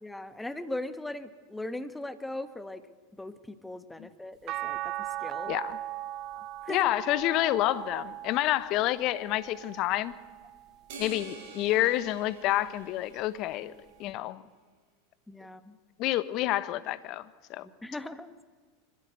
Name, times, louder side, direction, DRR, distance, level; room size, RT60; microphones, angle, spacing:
voice 1, 0.0-2.8 3.2-5.5 6.3-6.9 14.3-14.4 15.3-15.8 17.6-18.4, left 1 dB, 5° left, 11 dB, 1.4 m, -39 dB
sound 1, 4.5-10.8 11.3-12.7 14.1-14.2, right 14 dB, 45° right, 0.7 m, -39 dB
voice 2, 6.7-10.1 11.0-13.7 14.0-14.4 16.0-17.7, left 15 dB, 50° left, 16 dB, 1.1 m, -28 dB
sound 2, 10.9-13.6, right 4 dB, 60° right, 6.9 m, -47 dB
25.0 x 15.5 x 8.2 m, 1.4 s
hypercardioid pair, 85°, 0 cm